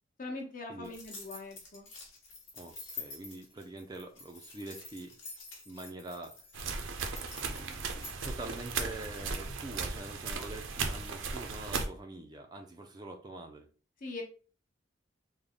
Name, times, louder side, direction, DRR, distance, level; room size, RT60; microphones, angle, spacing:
voice 1, 0.2-1.9 14.0-14.2, left 2 dB, 45° left, 1 dB, 0.9 m, -41 dB
sound 1, 0.8-8.1, left 4 dB, 75° left, 1.2 m, -48 dB
voice 2, 2.5-5.1 5.7-6.4 7.5-13.7, right 2 dB, 20° right, 4 dB, 0.4 m, -45 dB
sound 2, 6.5-11.9, right 4 dB, 85° right, 0.6 m, -36 dB
3.4 x 2.1 x 3.7 m, 0.38 s
head